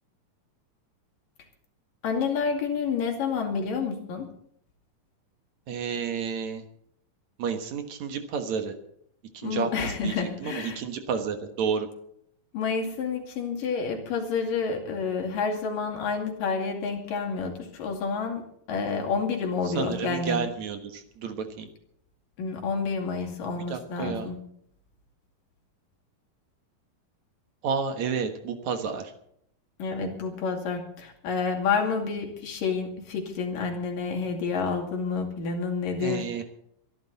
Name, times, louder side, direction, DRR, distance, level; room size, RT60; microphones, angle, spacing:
voice 1, 2.0-4.3 9.4-10.8 12.5-20.4 22.4-24.4 29.8-36.4, left 5 dB, 70° left, 2 dB, 4.1 m, -29 dB
voice 2, 5.7-6.6 7.4-8.7 9.3-11.9 19.7-21.7 23.7-24.3 27.6-29.1 36.0-36.4, right 6 dB, 60° right, 7 dB, 2.5 m, -31 dB
23.5 x 12.0 x 4.1 m, 0.69 s
omnidirectional pair, 4.0 m